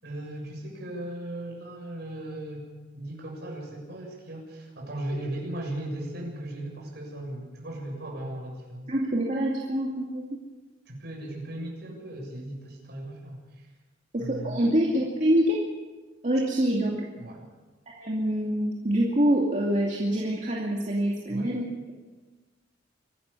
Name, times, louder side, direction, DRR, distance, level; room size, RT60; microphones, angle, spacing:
voice 1, 0.0-2.7 2.9-8.9 10.9-13.7 14.2-14.6 17.2-17.4 21.3-21.5, right 1 dB, 60° right, -1 dB, 7.1 m, -37 dB
voice 2, 8.9-10.4 14.1-15.6 16.2-17.0 17.9-21.7, right 1 dB, 40° right, -2 dB, 2.5 m, -25 dB
24.5 x 13.0 x 8.4 m, 1.3 s
head